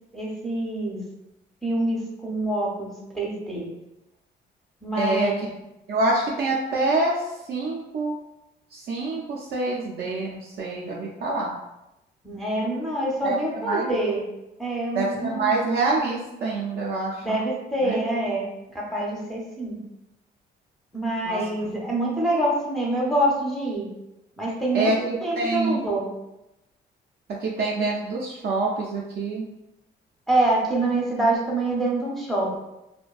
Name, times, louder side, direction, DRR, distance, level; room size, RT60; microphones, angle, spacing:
voice 1, 0.1-1.0 1.6-3.7 4.8-5.4 12.2-14.2 14.6-15.5 17.2-18.4 18.7-19.8 20.9-23.9 24.4-24.9 25.2-26.1 30.3-32.6, right 1 dB, ahead, -4 dB, 0.6 m, -25 dB
voice 2, 5.0-5.5 5.9-8.2 8.7-11.5 13.2-13.9 14.9-17.4 17.8-18.0 21.2-21.4 24.7-25.9 27.4-29.4, right 2 dB, 55° right, -4 dB, 0.4 m, -26 dB
2.5 x 2.1 x 2.3 m, 0.93 s
cardioid pair, 90°, 20 cm